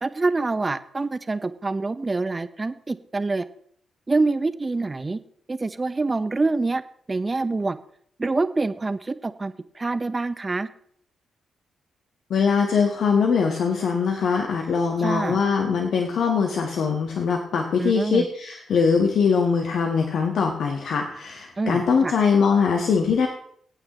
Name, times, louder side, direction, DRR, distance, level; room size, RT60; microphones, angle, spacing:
voice 1, 0.0-3.5 4.1-5.2 5.5-6.8 7.1-7.8 8.2-10.7 15.0-15.4 17.8-18.3 21.6-22.1, right 3 dB, 30° right, 12 dB, 0.9 m, -26 dB
voice 2, 12.3-23.3, left 5 dB, 65° left, 2 dB, 1.5 m, -22 dB
24.0 x 8.8 x 3.1 m, 0.63 s
hypercardioid pair, 40°, 0 cm